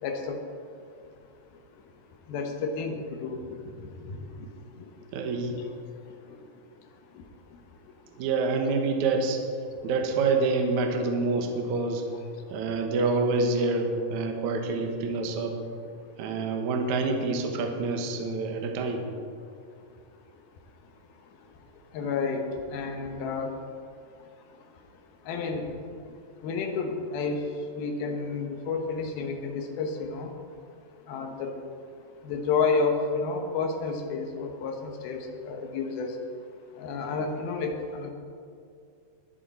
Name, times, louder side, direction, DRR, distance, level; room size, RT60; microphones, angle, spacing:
voice 1, 0.0-0.4 2.3-3.6 4.1-4.2 21.9-23.5 25.3-25.7 26.4-27.4 27.7-30.3 31.1-31.5 32.2-36.1 36.8-38.1, left 4 dB, 70° left, 3 dB, 2.8 m, -30 dB
voice 2, 5.1-5.6 8.2-9.4 9.8-12.0 12.5-15.5 16.2-19.1, right 3 dB, 65° right, 3 dB, 2.0 m, -27 dB
21.0 x 7.8 x 4.2 m, 2.4 s
omnidirectional pair, 4.8 m